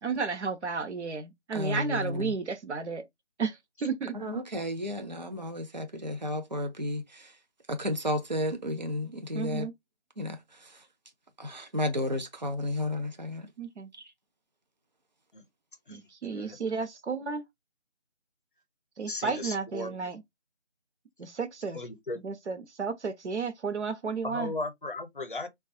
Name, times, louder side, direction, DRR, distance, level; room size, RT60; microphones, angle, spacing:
voice 1, 0.0-3.0 3.4-4.2 9.3-9.7 13.6-13.9 15.9-17.4 19.0-20.2 21.2-21.8 22.2-24.5, right 5 dB, 75° right, 0.7 m, -33 dB
voice 2, 1.5-2.3 4.1-7.2 7.7-9.7 10.2-10.4 11.4-13.5, left 1 dB, 40° right, 0.4 m, -32 dB
voice 3, 16.3-16.6 19.1-19.9 21.7-22.2 24.2-25.5, left 2 dB, 50° left, 0.6 m, -36 dB
3.4 x 2.3 x 2.5 m
figure-of-eight pair, 160°, 35 cm